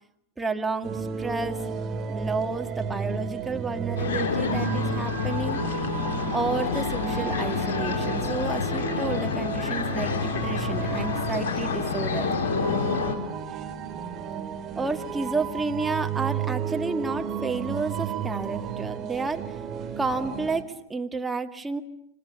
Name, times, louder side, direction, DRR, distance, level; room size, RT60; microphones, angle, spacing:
voice 1, 0.4-1.7 2.1-5.6 6.3-12.3 14.8-19.6 20.0-21.8, right 3 dB, 10° right, 4 dB, 2.0 m, -31 dB
sound 1, 0.8-20.6, right 6 dB, 30° right, 3.4 m, -33 dB
sound 2, 4.0-13.2, left 5 dB, 55° left, 4.2 m, -28 dB
29.0 x 25.5 x 7.1 m, 0.75 s
figure-of-eight pair, 90°, 0 cm